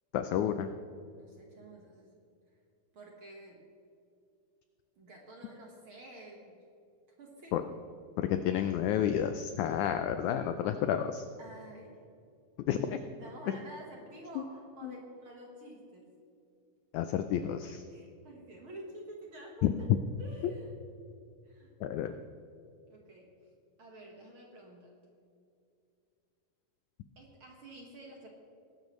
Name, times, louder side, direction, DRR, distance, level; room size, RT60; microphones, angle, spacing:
voice 1, 0.1-0.7 7.5-7.6 8.2-11.2 12.7-13.0 14.3-14.4 14.8-14.9 16.9-17.8 19.6-19.7 21.8-22.1, left 10 dB, 85° left, 8 dB, 1.7 m, -30 dB
voice 2, 1.2-2.1 2.9-3.6 5.0-6.6 7.2-7.6 11.4-12.0 13.2-16.1 17.9-19.9 20.2-20.8 21.4-21.7 22.1-22.2 22.9-23.3 23.8-24.9 27.2-28.3, right 1 dB, 50° right, -1 dB, 1.8 m, -49 dB
21.0 x 12.0 x 3.1 m, 2.5 s
omnidirectional pair, 4.0 m